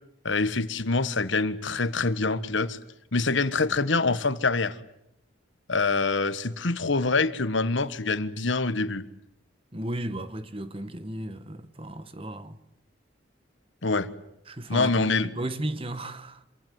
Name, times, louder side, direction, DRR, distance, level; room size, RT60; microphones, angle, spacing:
voice 1, 0.2-2.8 3.1-4.7 5.7-9.0 13.8-14.1 14.7-15.3, left 3 dB, 75° left, 1.4 m, -25 dB
voice 2, 9.7-12.6 14.5-16.4, right 1 dB, 30° right, 1.4 m, -34 dB
27.0 x 23.0 x 9.4 m
head